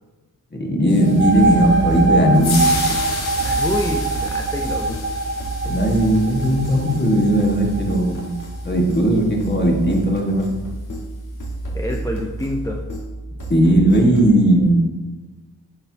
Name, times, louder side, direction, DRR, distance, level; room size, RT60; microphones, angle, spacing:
voice 1, 0.5-2.6 5.6-8.3 8.7-10.5 13.5-14.9, right 1 dB, 30° left, -1 dB, 1.7 m, -17 dB
sound 1, 0.9-9.2, left 4 dB, 85° left, 1.1 m, -33 dB
sound 2, 1.0-8.4, right 3 dB, 30° right, 0.7 m, -23 dB
sound 3, 1.1-14.4, right 1 dB, 55° left, 1.7 m, -31 dB
voice 2, 3.4-5.0 11.7-12.8, left 1 dB, 10° left, 1 dB, 0.6 m, -27 dB
8.5 x 4.4 x 2.9 m, 1.2 s
cardioid pair, 50°, 37 cm